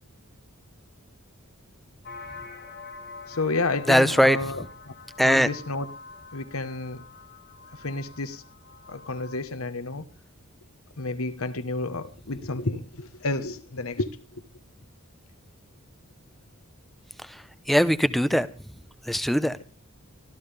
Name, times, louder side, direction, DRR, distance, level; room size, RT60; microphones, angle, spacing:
sound 1, 2.0-9.4, left 4 dB, 55° left, 1.7 m, -45 dB
voice 1, 3.3-4.9 5.2-5.9 6.3-7.0 7.7-8.4 8.9-10.0 11.0-14.4, left 3 dB, 90° left, 1.3 m, -31 dB
voice 2, 3.9-4.4 5.2-5.5 17.7-18.5 19.1-19.6, equal, ahead, 0.8 m, -20 dB
24.5 x 14.5 x 3.4 m
head